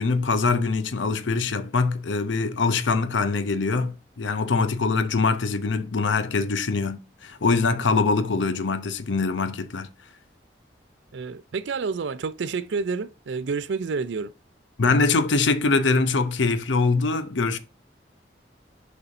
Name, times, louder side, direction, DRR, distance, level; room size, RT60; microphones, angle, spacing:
voice 1, 0.0-9.9 14.8-17.6, left 4 dB, 85° left, 0.7 m, -23 dB
voice 2, 11.1-14.3, right 4 dB, 75° right, 0.5 m, -29 dB
6.6 x 5.5 x 2.6 m
head